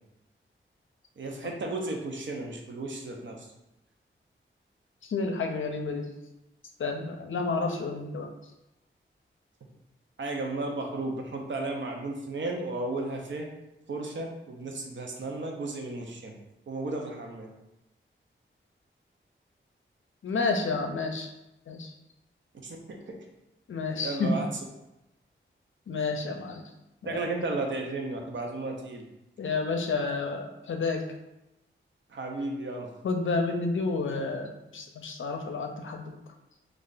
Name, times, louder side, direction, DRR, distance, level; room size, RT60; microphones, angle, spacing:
voice 1, 1.2-3.5 10.2-13.5 13.9-16.4 16.7-17.5 22.6-23.2 24.0-24.5 27.0-29.0 32.1-33.0, right 2 dB, 65° right, 2 dB, 0.6 m, -34 dB
voice 2, 5.0-6.1 6.8-8.3 20.2-21.3 21.7-21.9 23.7-24.4 25.9-26.6 27.0-27.2 29.4-31.0 33.0-36.2, left 3 dB, 70° left, 4 dB, 0.5 m, -30 dB
3.2 x 2.4 x 3.9 m, 0.93 s
wide cardioid pair, 110°, 21 cm